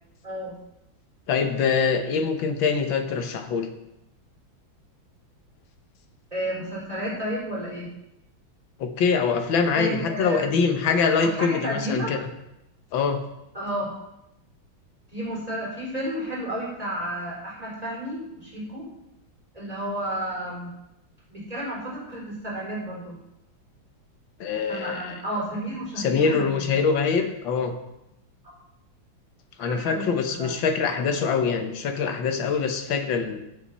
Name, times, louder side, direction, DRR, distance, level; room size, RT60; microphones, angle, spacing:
voice 1, 1.3-3.7 8.8-12.3 12.9-13.2 24.4-25.2 26.0-27.7 29.6-33.4, left 5 dB, 75° left, 6 dB, 1.9 m, -24 dB
voice 2, 6.3-7.9 9.7-10.6 11.2-12.1 13.5-13.9 15.1-18.8 19.5-20.7 21.3-23.2 24.7-26.6 29.6-30.5, equal, 15° right, -5 dB, 4.8 m, -32 dB
15.0 x 7.9 x 4.2 m, 0.88 s
omnidirectional pair, 2.2 m